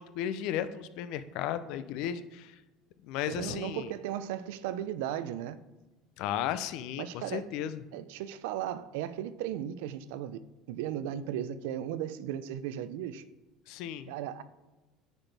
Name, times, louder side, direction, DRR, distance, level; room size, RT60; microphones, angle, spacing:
voice 1, 0.0-2.6 3.0-3.9 6.2-7.8 13.7-14.1, left 10 dB, 70° left, 0.5 m, -35 dB
voice 2, 3.3-5.6 7.0-7.4 7.9-10.4 10.7-13.2 14.1-14.4, right 11 dB, 85° right, 0.4 m, -36 dB
9.9 x 4.1 x 3.4 m
supercardioid pair, 115°, 0 cm